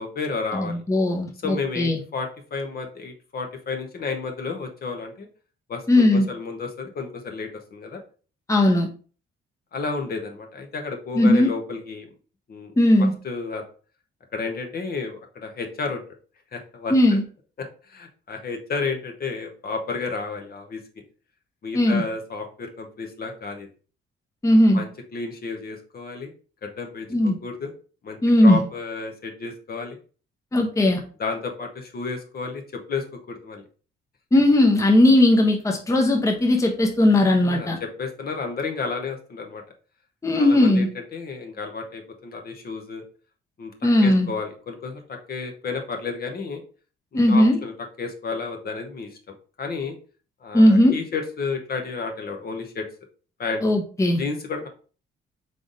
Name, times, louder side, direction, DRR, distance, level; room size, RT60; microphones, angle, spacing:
voice 1, 0.0-0.8 1.4-5.3 5.7-8.0 9.7-12.1 12.5-12.7 13.0-13.6 14.3-16.0 16.5-17.2 17.6-20.8 21.6-23.7 24.7-26.3 26.6-27.7 28.0-30.0 31.2-32.6 32.9-33.6 37.4-39.6 40.3-43.0 43.6-43.7 44.0-46.6 47.1-47.7 48.0-49.9 50.4-52.9 53.4-53.6 54.2-54.7, left 4 dB, 50° left, 4 dB, 1.0 m, -32 dB
voice 2, 0.5-2.0 5.9-6.3 8.5-8.9 11.1-11.5 12.8-13.1 16.9-17.2 21.7-22.0 24.4-24.8 27.1-27.4 28.2-28.6 30.5-31.0 34.3-37.8 40.2-40.9 43.8-44.3 47.1-47.6 50.5-51.0 53.6-54.2, left 1 dB, 15° left, 2 dB, 0.8 m, -18 dB
4.0 x 3.4 x 3.8 m, 0.38 s
cardioid pair, 90°, 20 cm